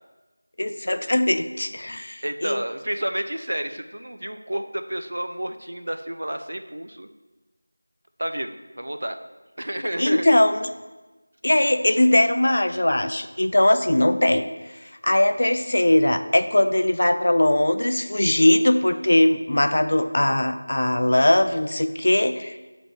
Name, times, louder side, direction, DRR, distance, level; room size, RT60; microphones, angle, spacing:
voice 1, 0.6-2.6 10.0-10.7 11.4-14.5 15.0-22.6, left 1 dB, 55° left, 10 dB, 0.4 m, -20 dB
voice 2, 2.2-7.1 8.2-9.2 9.6-10.3, right 1 dB, 65° right, 8 dB, 0.5 m, -30 dB
10.0 x 4.0 x 3.3 m, 1.2 s
figure-of-eight pair, 170°, 0 cm